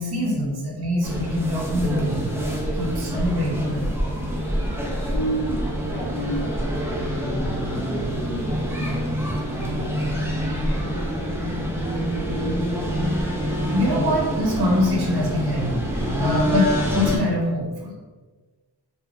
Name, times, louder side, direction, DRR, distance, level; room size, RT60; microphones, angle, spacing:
voice 1, 0.0-2.3 2.7-4.0 13.7-17.9, left 1 dB, 65° right, -2 dB, 0.8 m, -24 dB
sound 1, 1.0-17.2, equal, 5° right, 0.5 m, -26 dB
voice 2, 5.1-9.0 9.4-12.6, right 1 dB, 70° left, -4 dB, 0.6 m, -34 dB
3.0 x 2.2 x 2.4 m, 1.4 s
wide cardioid pair, 85°, 41 cm